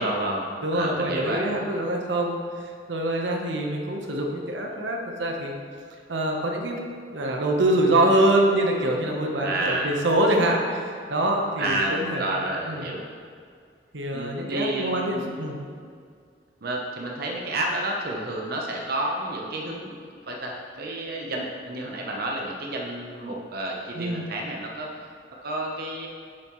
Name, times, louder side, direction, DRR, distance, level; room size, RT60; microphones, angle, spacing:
voice 1, 0.0-1.5 9.4-9.9 11.6-13.0 14.1-15.4 16.6-19.9 20.3-24.9 25.4-26.1, right 1 dB, 60° right, -1 dB, 0.9 m, -30 dB
voice 2, 0.6-2.4 2.9-5.5 6.1-6.8 7.1-12.3 12.7-12.9 13.9-15.6 23.9-24.3, right 1 dB, 85° right, 1 dB, 1.0 m, -24 dB
9.9 x 7.3 x 3.1 m, 2.2 s
head